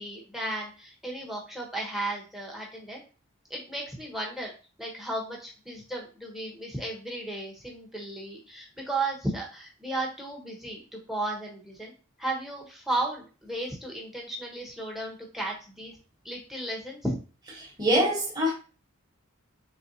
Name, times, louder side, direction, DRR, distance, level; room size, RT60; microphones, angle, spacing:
voice 1, 0.0-3.0 3.5-4.5 4.8-11.9 12.2-16.0 16.2-17.2, right 2 dB, ahead, 0.9 m, -34 dB
voice 2, 17.6-18.5, equal, 15° right, 1.3 m, -24 dB
4.1 x 3.4 x 2.7 m
head